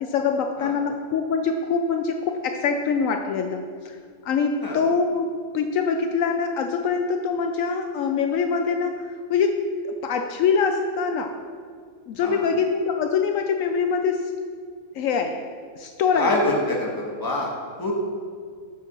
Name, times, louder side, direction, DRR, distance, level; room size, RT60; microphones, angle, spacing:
voice 1, 0.0-3.9 4.2-5.3 5.5-9.6 10.0-11.4 12.1-14.3 14.9-15.5 15.8-16.4, left 5 dB, 75° left, 5 dB, 0.9 m, -24 dB
voice 2, 16.1-17.5 17.8-17.9, left 1 dB, 15° left, -2 dB, 1.3 m, -25 dB
7.1 x 5.8 x 6.1 m, 2.1 s
omnidirectional pair, 1.4 m